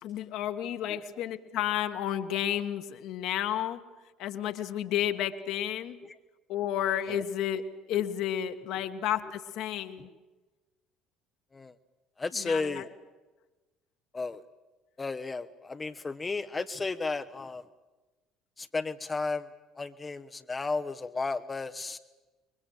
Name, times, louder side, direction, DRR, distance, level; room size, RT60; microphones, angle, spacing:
voice 1, 0.0-3.8 4.2-6.0 6.5-7.6 7.9-10.1 12.3-12.9, left 11 dB, 55° left, 8 dB, 1.7 m, -31 dB
voice 2, 12.2-12.9 14.1-14.4 15.0-17.6 18.6-19.5 19.8-22.0, left 3 dB, 20° left, 8 dB, 1.0 m, -33 dB
27.0 x 23.0 x 7.8 m, 1.2 s
figure-of-eight pair, 55°, 0 cm